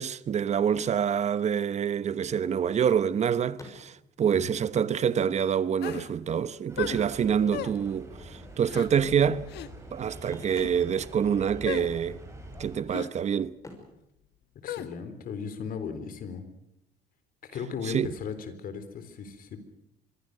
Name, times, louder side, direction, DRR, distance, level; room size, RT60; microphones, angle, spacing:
voice 1, 0.0-9.5 9.9-12.2 12.6-13.5 17.9-18.1, right 8 dB, 40° right, 1.0 m, -26 dB
sound 1, 3.6-4.3 5.2-5.3 5.5-5.6 6.9-8.1 10.1-11.5 11.7-12.0 12.5-13.1 13.5-15.3 17.3-17.4 17.8-17.9, left 2 dB, 20° left, 5.7 m, -52 dB
sound 2, 5.8-6.1 6.8-7.0 7.5-7.8 8.7-8.9 9.5-9.7 10.4-10.7 11.7-11.9 12.9-13.1 14.7-14.9, left 11 dB, 75° left, 1.5 m, -35 dB
sound 3, 6.7-12.8, right 1 dB, 15° right, 7.5 m, -45 dB
voice 2, 14.6-16.4 17.4-19.6, left 6 dB, 60° left, 3.7 m, -37 dB
25.5 x 22.0 x 6.7 m
cardioid pair, 110°, 17 cm